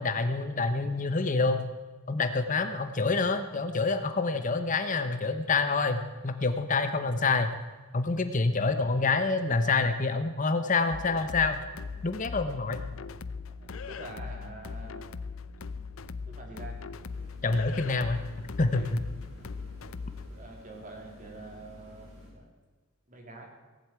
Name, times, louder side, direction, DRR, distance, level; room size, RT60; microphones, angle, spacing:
voice 1, 0.0-1.7 2.1-7.5 7.9-11.6 12.0-12.8 17.4-18.2 18.6-19.0, left 3 dB, 40° left, 9 dB, 0.9 m, -27 dB
sound 1, 10.9-20.3, left 4 dB, 75° left, 0.6 m, -40 dB
voice 2, 13.6-15.1 16.2-16.8 18.7-18.9 20.3-22.5 23.1-23.5, right 2 dB, 40° right, 2 dB, 3.2 m, -46 dB
sound 2, 17.0-22.3, left 1 dB, 70° right, 6.4 m, -52 dB
18.0 x 7.9 x 8.9 m, 1.3 s
head